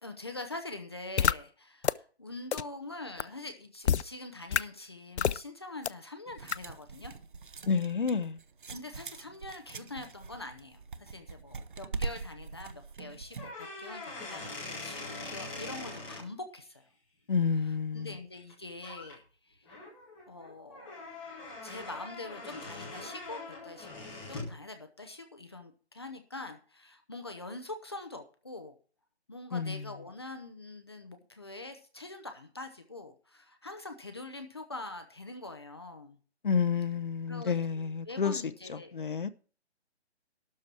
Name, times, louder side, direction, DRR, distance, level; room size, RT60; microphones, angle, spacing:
voice 1, 0.0-7.1 8.7-16.9 17.9-19.7 20.3-21.0 21.6-23.9 24.3-28.8 29.3-36.2 37.3-38.9, left 2 dB, 25° left, 0.8 m, -44 dB
sound 1, 1.2-1.3 1.8-1.9 2.5-2.6 3.2-3.3 3.8-4.0 4.5-4.6 5.2-5.4 5.8-5.9 6.5-6.6, left 8 dB, 80° left, 0.6 m, -25 dB
sound 2, 6.3-13.5, right 4 dB, 50° right, 0.8 m, -42 dB
voice 2, 7.7-8.4 17.3-18.2 29.5-29.9 36.4-38.4 38.7-39.3, left 6 dB, 50° left, 0.9 m, -30 dB
sound 3, 13.3-16.2 18.4-18.5 18.8-19.1 19.6-24.6, left 3 dB, 5° left, 1.3 m, -43 dB
12.5 x 4.5 x 8.4 m
hypercardioid pair, 175°, 33 cm